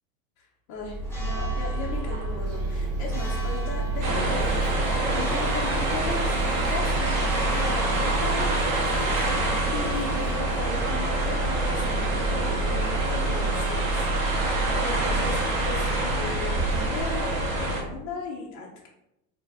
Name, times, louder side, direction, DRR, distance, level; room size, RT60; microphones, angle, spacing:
voice 1, 0.4-14.1 14.5-18.9, left 4 dB, 40° left, -2 dB, 0.6 m, -37 dB
Church bell, 0.8-18.0, right 2 dB, 5° left, 1.0 m, -29 dB
sound 1, 1.0-15.7, right 3 dB, 35° right, 0.4 m, -40 dB
sound 2, 4.0-17.8, right 2 dB, 60° right, 0.9 m, -27 dB
2.5 x 2.1 x 3.3 m, 0.87 s
hypercardioid pair, 95°, 45 cm